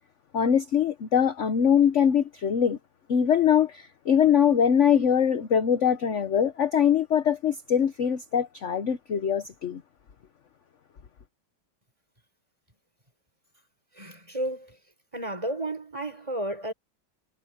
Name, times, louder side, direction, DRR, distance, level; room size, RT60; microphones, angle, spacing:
voice 1, 0.3-2.8 3.1-9.8, left 8 dB, 50° left, 1.0 m, -22 dB
voice 2, 14.0-14.8 15.1-16.7, right 1 dB, 15° right, 5.0 m, -32 dB
omnidirectional pair, 2.2 m